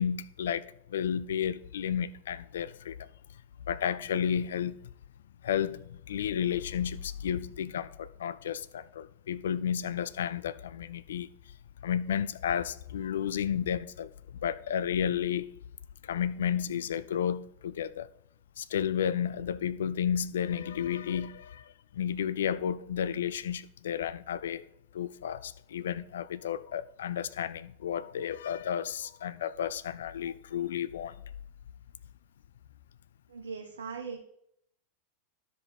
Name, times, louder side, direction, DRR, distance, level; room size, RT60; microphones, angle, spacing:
voice 1, 0.0-3.0 3.7-4.8 5.4-11.3 11.8-14.1 14.4-15.5 16.1-18.1 18.6-21.6 21.9-24.6 24.9-31.1, left 9 dB, 60° left, 0.4 m, -32 dB
voice 2, 33.3-34.2, right 5 dB, 70° right, 0.7 m, -39 dB
13.0 x 5.1 x 3.4 m
figure-of-eight pair, 90°, 0 cm